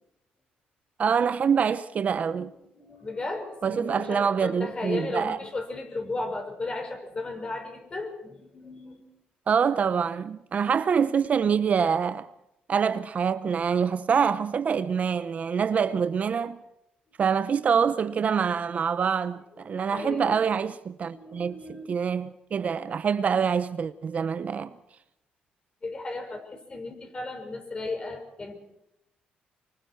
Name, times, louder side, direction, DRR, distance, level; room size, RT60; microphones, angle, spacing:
voice 1, 1.0-2.5 3.6-5.4 9.5-12.3 12.7-16.6 17.2-24.7, right 6 dB, 45° right, 0.8 m, -25 dB
voice 2, 2.3-9.1 19.6-20.4 21.1-21.8 25.8-28.6, left 2 dB, 30° left, 5.5 m, -35 dB
25.0 x 25.0 x 4.6 m
cardioid pair, 100°, 3 cm